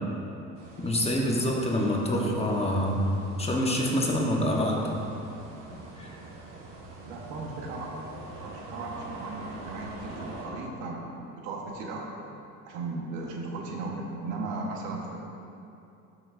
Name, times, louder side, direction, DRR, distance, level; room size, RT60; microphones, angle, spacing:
sound 1, 0.5-10.5, right 2 dB, 70° right, 1.8 m, -44 dB
voice 1, 0.8-3.0 3.4-4.8 6.0-6.1, left 1 dB, 20° left, -2 dB, 1.2 m, -26 dB
voice 2, 7.1-12.1 12.7-15.2, right 3 dB, 85° right, -1 dB, 1.4 m, -36 dB
12.0 x 6.3 x 2.6 m, 2.7 s
cardioid pair, 115°, 34 cm